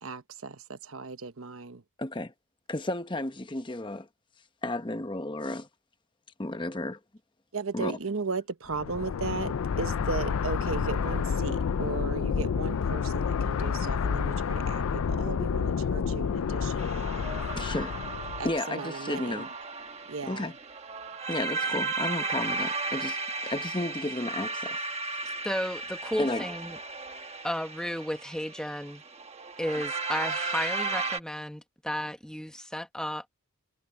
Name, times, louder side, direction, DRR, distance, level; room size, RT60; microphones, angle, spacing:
voice 1, 0.0-1.8 7.5-17.1 18.4-19.5 20.1-20.5, right 4 dB, 70° right, 1.0 m, -36 dB
voice 2, 2.0-2.3 2.7-4.1 4.6-5.7 6.4-7.0 7.7-8.0 17.6-17.9 18.4-19.5 20.2-20.5 21.3-24.8 26.2-26.4, left 2 dB, 20° left, 0.9 m, -33 dB
sound 1, 8.7-18.6, left 6 dB, 80° left, 0.4 m, -29 dB
sound 2, 16.8-31.2, right 3 dB, 30° right, 1.2 m, -35 dB
voice 3, 25.4-26.8 27.4-29.0 29.6-33.2, equal, 5° left, 1.3 m, -33 dB
head